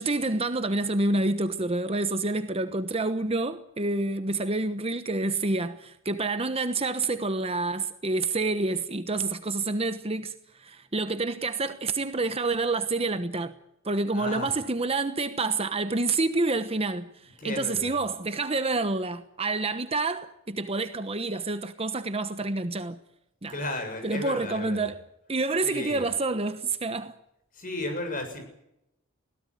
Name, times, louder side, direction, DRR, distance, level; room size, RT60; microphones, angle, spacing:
voice 1, 0.0-13.5 13.8-23.0 23.4-23.5 24.0-25.0 25.3-27.2, right 3 dB, 30° right, 1.1 m, -28 dB
voice 2, 14.1-14.6 17.4-18.0 23.5-24.9 25.6-26.0 27.5-28.4, left 1 dB, 40° left, 7.4 m, -34 dB
21.5 x 17.5 x 9.5 m
head